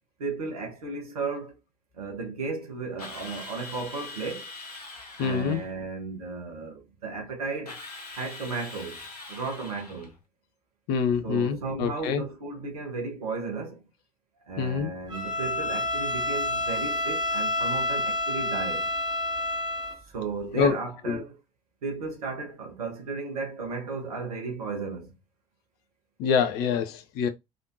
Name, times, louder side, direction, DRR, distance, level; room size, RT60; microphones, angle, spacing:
voice 1, 0.2-1.6 1.9-4.5 5.2-7.8 8.2-9.0 9.3-10.1 11.2-13.8 14.4-18.9 20.1-21.4 21.8-25.1, right 4 dB, 75° right, 1.3 m, -34 dB
Drill, 3.0-5.7 7.7-10.1, left 3 dB, 80° left, 0.9 m, -42 dB
voice 2, 5.2-5.6 10.9-12.2 14.6-14.9 20.5-20.8 21.1-21.2 26.2-27.3, left 7 dB, 55° left, 0.6 m, -25 dB
Bowed string instrument, 15.1-20.0, left 2 dB, 25° right, 2.0 m, -29 dB
3.8 x 3.4 x 2.6 m
figure-of-eight pair, 60°, 20 cm